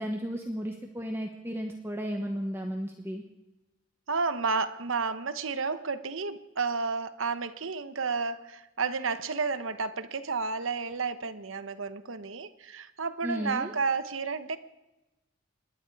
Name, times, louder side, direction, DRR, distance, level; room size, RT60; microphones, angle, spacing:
voice 1, 0.0-3.2 13.2-13.7, equal, 10° right, 2 dB, 1.1 m, -34 dB
voice 2, 4.1-14.6, right 4 dB, 70° right, 11 dB, 1.0 m, -31 dB
27.0 x 11.5 x 4.8 m, 1.0 s
head